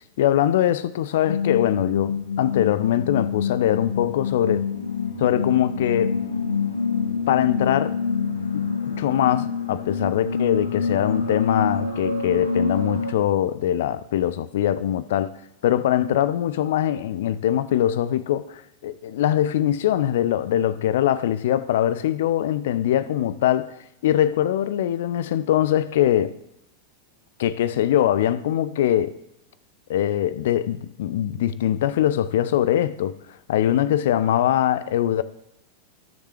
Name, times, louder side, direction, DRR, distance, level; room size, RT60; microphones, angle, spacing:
voice 1, 0.2-4.7 5.2-6.2 7.3-8.0 8.5-8.6 9.0-15.3 15.6-26.3 27.4-29.2 29.9-33.1 33.5-35.2, left 11 dB, 55° left, 0.6 m, -22 dB
sound 1, 1.3-13.1, left 5 dB, 75° left, 1.4 m, -26 dB
18.5 x 6.8 x 3.2 m
figure-of-eight pair, 90°, 0 cm